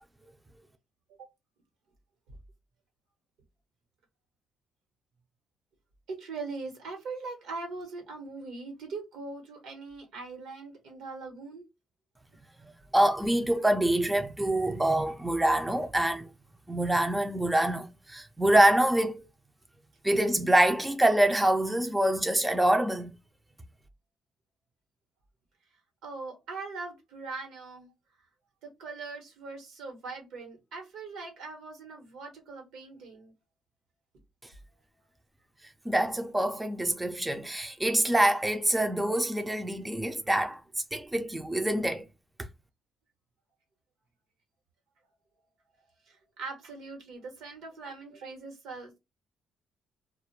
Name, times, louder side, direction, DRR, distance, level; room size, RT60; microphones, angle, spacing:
voice 1, 6.1-11.6 26.0-27.9 28.6-33.3 46.1-49.0, right 3 dB, 85° right, 1.2 m, -41 dB
voice 2, 12.9-16.3 16.7-19.2 20.0-23.1 35.9-40.6 40.9-42.0, right 1 dB, 10° right, 0.4 m, -25 dB
2.4 x 2.1 x 2.9 m
cardioid pair, 90°, 0 cm